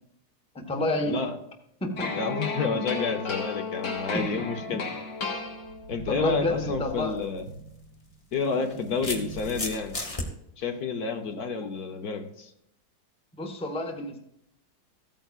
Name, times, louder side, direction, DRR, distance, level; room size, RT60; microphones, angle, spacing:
voice 1, 0.5-1.2 1.8-2.1 2.7-2.9 4.1-4.8 6.1-7.2 8.6-8.8 11.6-11.7 13.4-14.2, left 1 dB, 5° left, 2 dB, 1.0 m, -30 dB
voice 2, 1.1-1.4 2.1-4.9 5.2-5.4 5.9-7.4 8.3-9.9 10.6-12.5, left 5 dB, 65° left, 5 dB, 1.4 m, -30 dB
sound 1, 2.0-6.1, left 4 dB, 85° left, 2.5 m, -33 dB
sound 2, 4.1-8.3 8.7-9.7, right 3 dB, 85° right, 1.3 m, -42 dB
sound 3, 7.1-7.2 8.3-10.3, left 2 dB, 25° left, 1.2 m, -34 dB
15.0 x 9.0 x 2.4 m, 0.76 s
omnidirectional pair, 1.8 m